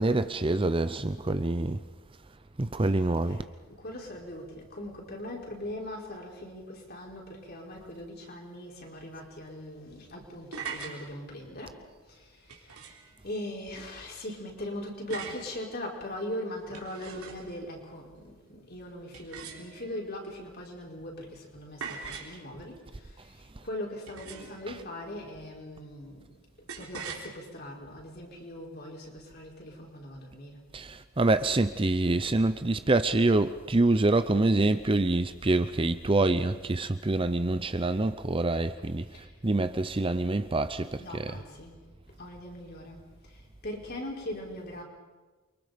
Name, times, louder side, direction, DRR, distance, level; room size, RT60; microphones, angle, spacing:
voice 1, 0.0-1.8 2.6-3.4 30.7-39.0 39.4-41.4, right 2 dB, 25° right, 0.6 m, -26 dB
voice 2, 3.2-11.8 12.1-12.3 13.2-23.3 23.6-26.3 26.6-30.6 39.1-39.3 41.0-41.8 42.1-43.0 43.6-44.8, left 1 dB, 45° left, 4.8 m, -40 dB
sound 1, 10.5-11.0 12.5-13.1 15.1-15.5 16.6-17.6 19.1-20.0 21.8-22.4 24.1-24.6 26.7-27.3, right 5 dB, 90° right, 3.7 m, -41 dB
29.0 x 24.0 x 5.2 m
head